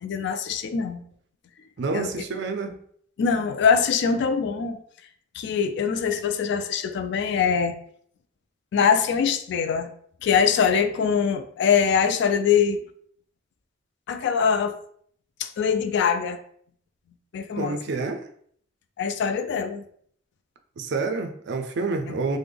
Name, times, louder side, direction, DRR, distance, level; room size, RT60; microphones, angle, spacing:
voice 1, 0.0-1.0 1.9-2.1 3.2-4.8 5.3-7.7 8.7-9.9 10.2-12.8 14.1-14.7 15.4-16.4 17.3-17.8 19.0-19.8, left 6 dB, 60° left, 8 dB, 0.3 m, -23 dB
voice 2, 1.8-2.8 17.6-18.2 20.8-22.4, right 3 dB, 65° right, 7 dB, 0.4 m, -28 dB
3.4 x 2.1 x 3.3 m, 0.62 s
head